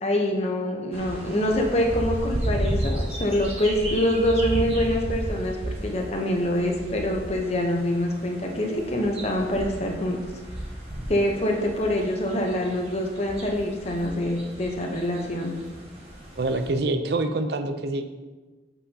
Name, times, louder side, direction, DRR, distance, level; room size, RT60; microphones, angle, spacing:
voice 1, 0.0-10.2 11.1-15.5, left 1 dB, 35° left, 1 dB, 0.8 m, -25 dB
sound 1, 0.9-16.7, right 1 dB, 35° right, 1.5 m, -34 dB
voice 2, 16.4-18.1, right 2 dB, 65° right, 8 dB, 0.5 m, -26 dB
8.2 x 5.5 x 2.8 m, 1.3 s
head